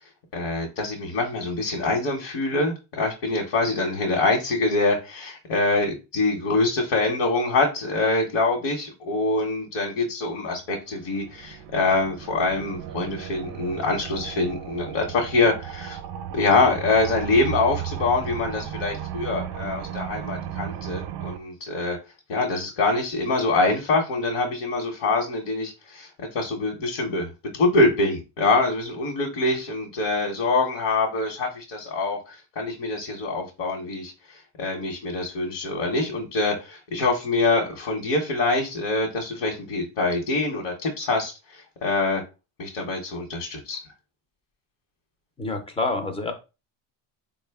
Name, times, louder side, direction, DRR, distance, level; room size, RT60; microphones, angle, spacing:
voice 1, 0.3-16.0 16.3-22.0 22.3-42.2 42.6-43.8, left 3 dB, 60° left, 1.0 m, -25 dB
sound 1, 10.8-21.4, right 10 dB, 55° right, 0.5 m, -35 dB
voice 2, 45.4-46.3, left 3 dB, 15° left, 0.3 m, -27 dB
4.0 x 2.1 x 3.3 m
cardioid pair, 145°, 48 cm